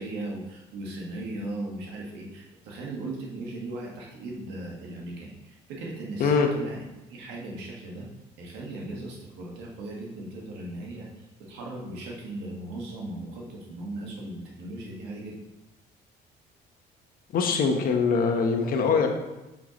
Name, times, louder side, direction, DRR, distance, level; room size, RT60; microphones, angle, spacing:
voice 1, 0.0-6.8 7.1-8.1 8.4-11.1 11.4-15.5, right 2 dB, 85° right, -2 dB, 1.7 m, -37 dB
voice 2, 17.3-19.1, left 5 dB, 60° left, 4 dB, 1.1 m, -23 dB
7.2 x 5.7 x 3.1 m, 1.0 s
cardioid pair, 110°, 17 cm